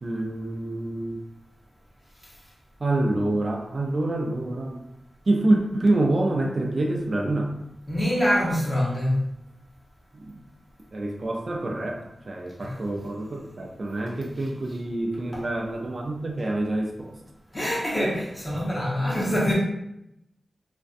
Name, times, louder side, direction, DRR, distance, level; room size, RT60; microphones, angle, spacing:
voice 1, 0.0-1.2 2.8-4.8 5.3-7.5 10.1-10.4 10.9-17.2, right 2 dB, 50° right, 1 dB, 0.3 m, -26 dB
voice 2, 7.9-9.1 12.6-12.7 15.3-15.4 17.5-19.6, equal, 20° left, -4 dB, 0.9 m, -25 dB
2.5 x 2.1 x 2.4 m, 0.83 s
wide cardioid pair, 75°, 0 cm